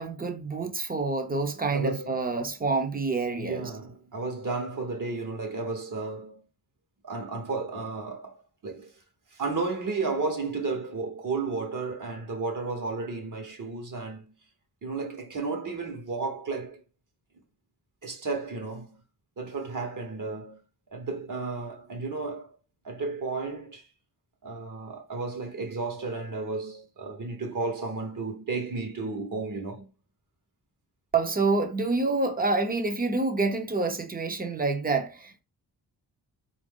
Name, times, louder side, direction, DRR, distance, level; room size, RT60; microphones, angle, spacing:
voice 1, 0.0-3.7 31.1-35.4, right 3 dB, 25° right, 0.7 m, -27 dB
voice 2, 1.7-2.2 3.3-6.4 7.0-8.9 9.3-14.2 14.8-16.8 18.0-19.0 19.4-20.6 20.9-22.6 22.8-23.9 24.4-29.9, right 3 dB, 55° right, 1.1 m, -33 dB
4.2 x 2.6 x 3.6 m
wide cardioid pair, 125°, 38 cm